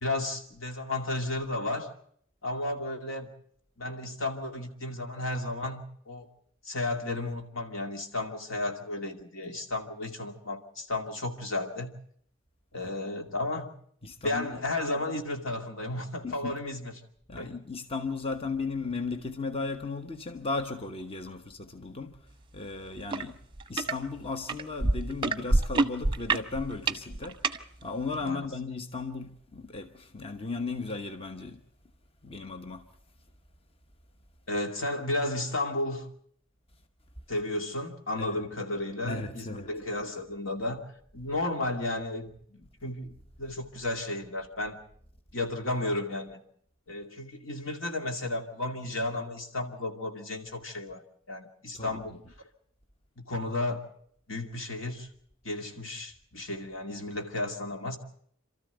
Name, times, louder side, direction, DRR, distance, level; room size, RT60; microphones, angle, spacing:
voice 1, 0.0-1.9 2.4-3.3 3.8-6.3 6.6-11.9 12.7-13.7 14.2-16.9 17.4-17.5 28.2-28.5 34.5-36.1 37.3-44.8 45.3-46.4 46.9-51.0 51.3-52.2 53.2-53.9 54.3-55.1 55.4-58.0, left 2 dB, 70° left, 2.5 m, -33 dB
voice 2, 14.0-14.6 16.2-16.6 17.3-22.3 22.5-23.4 23.7-27.4 27.8-31.6 32.2-32.9 38.2-38.5 39.0-39.7 51.7-52.2, left 3 dB, 30° left, 1.1 m, -36 dB
sound 1, 23.1-23.2 23.6-23.9 24.5-27.6 28.3-28.4, right 2 dB, 25° right, 0.9 m, -26 dB
28.0 x 13.5 x 8.1 m
head